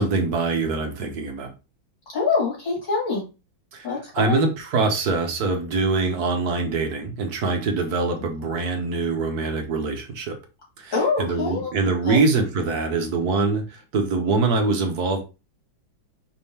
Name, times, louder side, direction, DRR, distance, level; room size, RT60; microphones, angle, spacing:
voice 1, 0.0-1.5 3.7-3.9 4.1-10.3 10.8-10.9 11.2-15.2, right 3 dB, 60° right, 4 dB, 1.3 m, -24 dB
voice 2, 2.1-3.2 3.8-4.5 10.9-11.7 12.0-12.2, left 4 dB, 75° left, -2 dB, 3.0 m, -24 dB
5.3 x 3.4 x 2.8 m, 0.29 s
omnidirectional pair, 2.1 m